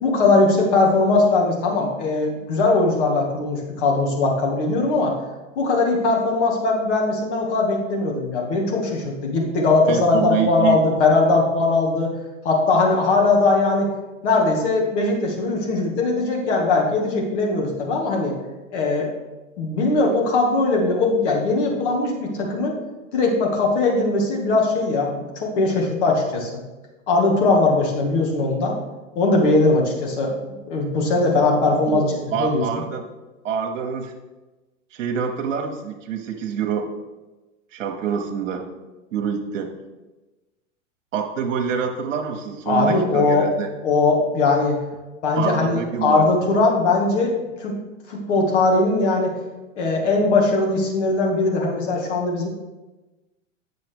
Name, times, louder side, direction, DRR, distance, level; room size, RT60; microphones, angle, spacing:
voice 1, 0.0-5.2 5.6-12.1 12.4-13.9 14.2-18.3 18.7-19.1 19.6-22.8 23.1-26.5 27.1-28.7 29.2-30.3 30.7-32.0 32.4-32.6 42.7-43.5 43.8-44.8 45.2-47.8 48.1-49.3 49.8-52.5, left 3 dB, 60° left, 0 dB, 2.1 m, -20 dB
voice 2, 9.9-10.8 31.9-33.0 33.4-34.1 34.9-36.9 37.7-38.7 39.1-39.7 41.1-43.7 45.4-46.2, right 7 dB, 70° right, 2 dB, 1.1 m, -26 dB
8.2 x 6.6 x 3.5 m, 1.1 s
hypercardioid pair, 105°, 39 cm